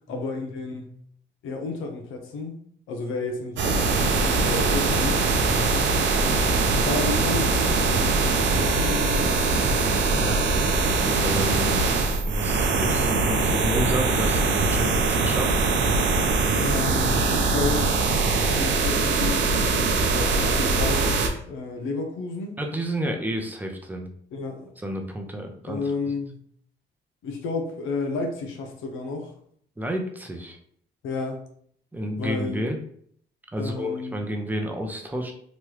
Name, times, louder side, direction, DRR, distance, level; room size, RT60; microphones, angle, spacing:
voice 1, 0.1-0.9 1.4-2.6 2.9-5.2 6.1-9.9 16.5-18.0 18.5-21.2 21.5-22.6 24.3-24.7 25.7-26.3 27.2-29.3 31.0-31.4 32.2-32.6 33.6-34.3, left 3 dB, 90° left, 3 dB, 0.7 m, -31 dB
sound 1, 3.6-21.3, right 3 dB, 70° right, 0.6 m, -22 dB
voice 2, 10.1-10.4 10.9-11.9 12.2-15.5 22.6-24.1 24.8-25.8 29.8-30.6 31.9-32.8 33.5-35.3, equal, 10° right, 3 dB, 0.6 m, -30 dB
3.0 x 2.2 x 3.1 m, 0.63 s
cardioid pair, 90°, 20 cm